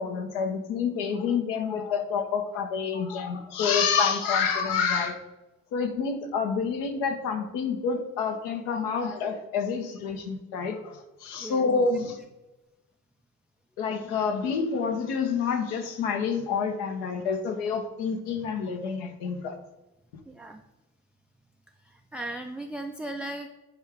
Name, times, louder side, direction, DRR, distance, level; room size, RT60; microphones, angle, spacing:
voice 1, 0.0-5.2 5.7-12.2 13.8-19.6, left 5 dB, 70° left, 6 dB, 1.0 m, -28 dB
voice 2, 20.3-20.6 21.8-23.5, right 1 dB, 5° right, 4 dB, 0.3 m, -37 dB
10.5 x 3.7 x 3.5 m, 1.0 s
hypercardioid pair, 50°, 40 cm